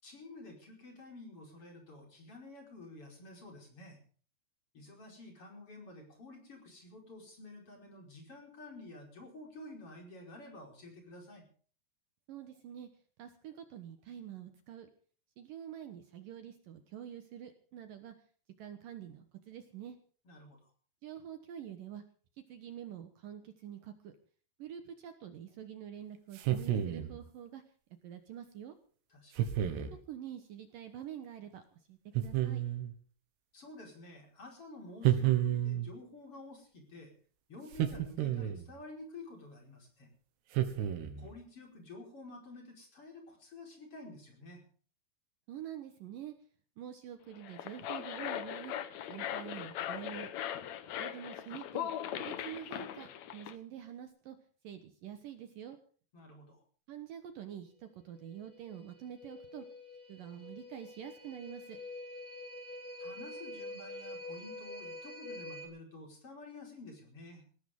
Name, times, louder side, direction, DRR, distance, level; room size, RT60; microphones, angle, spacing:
voice 1, 0.0-4.0 4.7-11.4 20.2-20.6 29.1-29.5 33.5-37.1 37.5-40.1 41.2-44.6 56.1-56.6 63.0-67.4, left 2 dB, 35° left, 2 dB, 5.7 m, -50 dB
voice 2, 12.3-12.9 13.2-14.9 15.4-18.1 18.6-20.0 21.0-22.0 22.5-24.1 24.6-27.6 28.0-28.8 30.1-31.6 31.9-32.6 45.5-46.3 46.8-48.7 49.1-50.3 51.0-51.9 52.2-54.4 54.6-55.8 56.9-59.7 60.1-61.8, right 10 dB, 65° right, 8 dB, 2.6 m, -46 dB
sound 1, 26.3-27.2 29.4-30.0 32.2-32.9 35.0-35.9 37.7-38.7 40.5-41.3, right 12 dB, 85° right, 3.7 m, -31 dB
sound 2, 47.3-53.5, left 10 dB, 80° left, 1.6 m, -40 dB
sound 3, 58.1-65.7, left 1 dB, 65° left, 6.6 m, -46 dB
20.5 x 17.0 x 3.7 m, 0.42 s
omnidirectional pair, 4.7 m